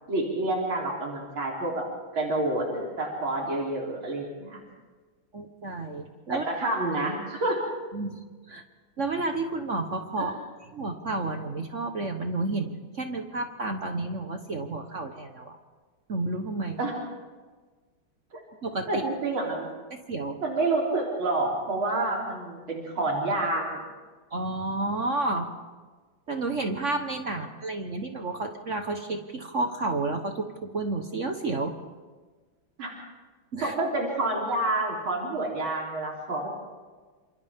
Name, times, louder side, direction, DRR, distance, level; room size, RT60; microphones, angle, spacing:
voice 1, 0.1-1.8 2.1-4.6 6.3-7.6 10.2-10.3 16.8-16.9 18.3-18.4 18.9-19.7 20.4-23.8 32.8-32.9 33.6-36.5, right 2 dB, 85° right, -3 dB, 4.4 m, -28 dB
voice 2, 5.3-6.4 7.9-8.6 9.0-10.3 10.7-15.6 16.1-16.8 18.6-19.0 19.9-20.3 24.3-25.5 26.3-31.8 33.5-33.7, right 2 dB, 45° right, 5 dB, 1.3 m, -31 dB
28.0 x 27.5 x 3.6 m, 1.4 s
omnidirectional pair, 2.2 m